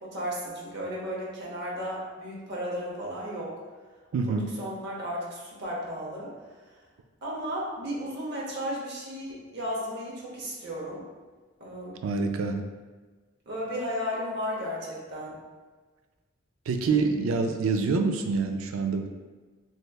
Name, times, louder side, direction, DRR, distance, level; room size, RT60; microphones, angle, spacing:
voice 1, 0.0-3.6 4.3-6.3 7.2-11.0 11.6-12.0 13.5-15.4, equal, 60° right, -4 dB, 0.9 m, -34 dB
voice 2, 4.1-4.5 12.0-12.6 16.7-19.1, right 4 dB, 85° right, 5 dB, 0.3 m, -26 dB
3.3 x 3.0 x 2.3 m, 1.3 s
head